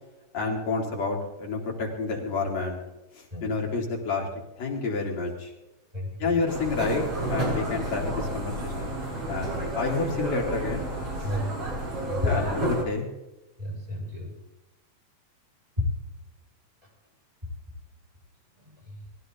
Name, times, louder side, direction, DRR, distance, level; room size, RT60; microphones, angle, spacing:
voice 1, 0.3-2.8 3.1-4.3 4.6-5.5 6.2-9.0 9.3-10.9 11.2-11.3 12.3-13.1, left 4 dB, 60° left, -1 dB, 4.9 m, -29 dB
voice 2, 5.9-6.4 11.2-11.7 12.1-12.5 13.6-14.3 15.8-15.9 18.6-19.1, left 2 dB, 10° right, -4 dB, 7.0 m, -31 dB
sound 1, 6.5-12.8, right 1 dB, 50° right, 4.9 m, -30 dB
21.5 x 16.5 x 4.0 m, 0.97 s
omnidirectional pair, 3.4 m